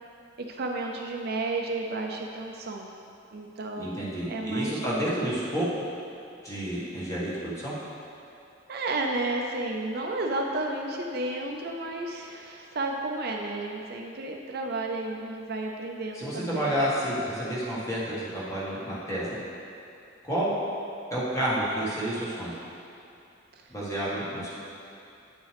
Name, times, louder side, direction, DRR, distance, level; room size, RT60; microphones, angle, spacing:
voice 1, 0.5-2.9 3.3-5.4 8.7-16.8, right 2 dB, 55° right, 1 dB, 0.5 m, -32 dB
voice 2, 3.8-5.7 6.4-7.7 16.1-19.4 20.2-20.5 21.1-22.5 23.7-24.5, right 1 dB, 15° left, -8 dB, 1.6 m, -30 dB
9.0 x 6.3 x 3.4 m, 2.6 s
head